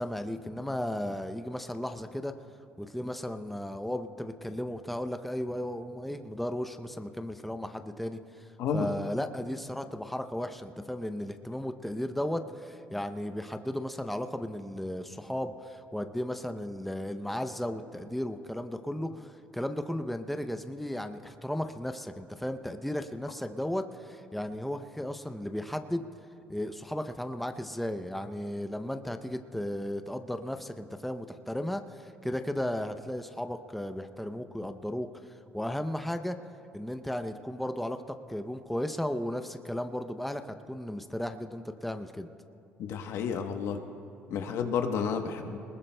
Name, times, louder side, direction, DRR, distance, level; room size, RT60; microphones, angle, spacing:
voice 1, 0.0-2.3 2.8-26.1 26.5-35.1 35.5-36.4 36.7-42.3, left 1 dB, ahead, 8 dB, 0.6 m, -35 dB
voice 2, 8.6-8.9 42.8-43.8 44.3-45.6, left 6 dB, 70° left, 6 dB, 1.1 m, -31 dB
21.5 x 20.0 x 2.3 m, 2.5 s
supercardioid pair, 80°, 5 cm